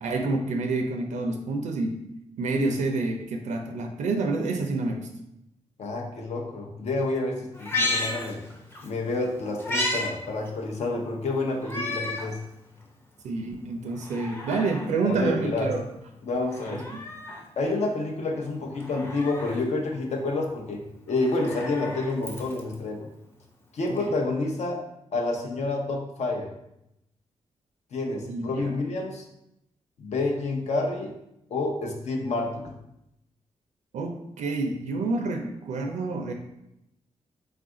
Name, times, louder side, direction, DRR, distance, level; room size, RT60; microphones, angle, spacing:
voice 1, 0.0-2.0 2.4-5.1 13.2-15.8 16.7-17.0 23.9-24.1 28.3-28.7 33.9-36.3, right 3 dB, 80° right, 4 dB, 0.4 m, -28 dB
voice 2, 5.8-8.4 8.8-12.4 15.0-15.7 16.2-16.9 17.6-23.1 23.7-24.8 25.1-26.5 27.9-29.2 30.0-31.1 31.5-32.7, left 2 dB, 65° left, 2 dB, 0.7 m, -29 dB
Meow, 7.5-8.9 9.2-10.1 10.5-10.6 11.6-12.3 12.8-12.9 13.9-14.9 16.4-17.4 18.8-19.6 21.1-22.7 24.0-24.1, left 1 dB, 20° left, 0.7 m, -32 dB
3.4 x 2.4 x 3.7 m, 0.84 s
cardioid pair, 90°, 12 cm